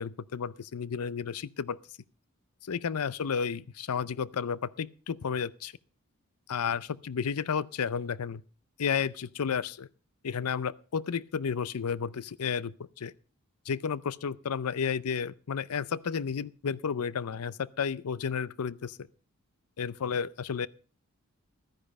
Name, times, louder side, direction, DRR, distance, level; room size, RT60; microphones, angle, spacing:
voice 1, 0.0-1.8 2.6-5.7 6.5-8.4 8.8-9.9 10.2-13.1 13.7-19.0 19.8-20.7, left 6 dB, 80° left, 0.5 m, -32 dB
13.5 x 10.0 x 5.2 m
head